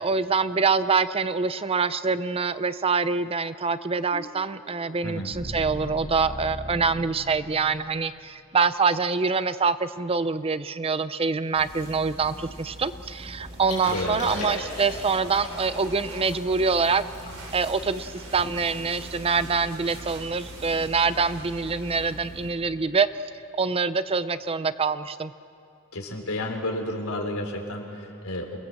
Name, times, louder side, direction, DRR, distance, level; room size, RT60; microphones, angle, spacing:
voice 1, 0.0-17.0 17.5-23.1 23.6-25.3, right 4 dB, 25° right, 13 dB, 0.5 m, -25 dB
sound 1, 4.1-8.2, equal, 5° right, 3.1 m, -39 dB
sound 2, 11.6-22.5, right 1 dB, 70° right, 5.3 m, -41 dB
Liquid, 13.6-18.9 19.4-19.5 19.8-20.1 20.3-20.6 21.2-21.4 22.9-23.0, left 2 dB, 35° left, 7.4 m, -38 dB
voice 2, 13.8-14.2 25.9-28.6, left 1 dB, 75° left, 2 dB, 3.5 m, -31 dB
27.0 x 19.5 x 7.6 m, 2.7 s
head